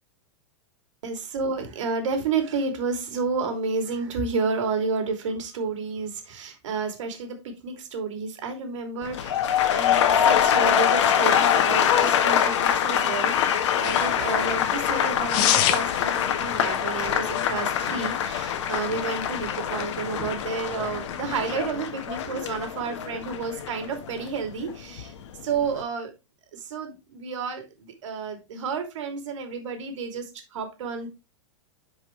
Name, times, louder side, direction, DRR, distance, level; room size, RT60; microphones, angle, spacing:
voice 1, 1.0-9.4 9.7-25.1 25.4-26.1 26.5-30.2 30.5-31.1, right 4 dB, 75° right, 5 dB, 2.9 m, -31 dB
sound 1, 9.0-25.1 25.4-25.8, left 9 dB, 70° left, 1.4 m, -24 dB
sound 2, 13.8-21.7, left 11 dB, 45° left, 1.1 m, -32 dB
11.0 x 5.4 x 3.2 m, 0.25 s
supercardioid pair, 155°, 16 cm